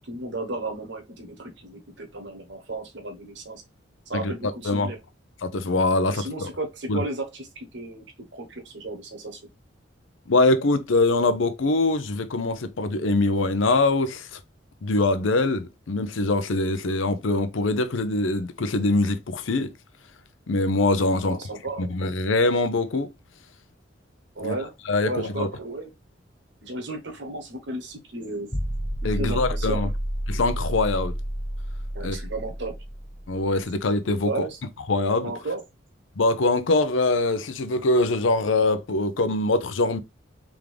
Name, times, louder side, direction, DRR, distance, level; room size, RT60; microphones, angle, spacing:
voice 1, 0.0-3.6 4.1-5.0 6.1-9.4 21.2-21.9 24.3-24.7 25.0-25.9 26.6-28.5 29.1-29.9 31.9-32.7 34.2-34.6 35.2-35.6, right 2 dB, 65° right, 1.1 m, -34 dB
voice 2, 5.4-6.5 6.9-7.0 10.3-14.4 14.8-19.7 20.5-21.4 21.8-23.1 24.4-24.6 24.9-25.5 29.0-29.9 30.3-31.1 32.0-32.2 33.3-34.4 34.9-35.3 36.2-40.0, left 2 dB, 85° left, 0.6 m, -23 dB
sound 1, 28.5-33.6, equal, 10° left, 0.6 m, -30 dB
3.6 x 3.5 x 3.3 m
head